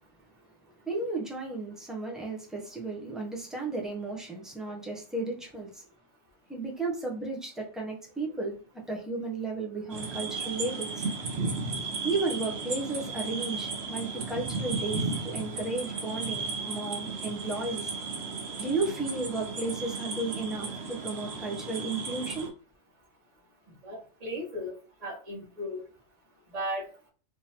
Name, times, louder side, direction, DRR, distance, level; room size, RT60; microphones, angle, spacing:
voice 1, 0.9-5.8 6.5-8.6 8.9-11.1 12.0-17.9 18.6-22.5, right 3 dB, ahead, -2 dB, 0.5 m, -34 dB
sound 1, 9.9-22.5, right 4 dB, 60° right, 0.9 m, -35 dB
voice 2, 23.8-24.7 25.0-25.8 26.5-26.8, equal, 30° right, -4 dB, 1.2 m, -35 dB
3.6 x 2.8 x 2.9 m, 0.39 s
omnidirectional pair, 1.4 m